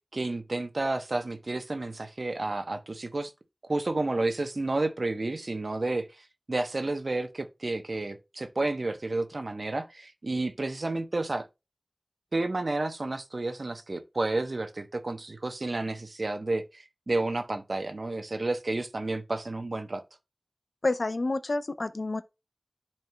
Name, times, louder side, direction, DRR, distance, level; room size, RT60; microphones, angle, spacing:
voice 1, 0.1-3.3 3.6-6.1 6.5-11.5 12.3-20.0, right 2 dB, 75° right, 0.9 m, -31 dB
voice 2, 20.8-22.2, left 2 dB, 80° left, 0.5 m, -29 dB
11.0 x 4.4 x 2.2 m
wide cardioid pair, 40°, 0 cm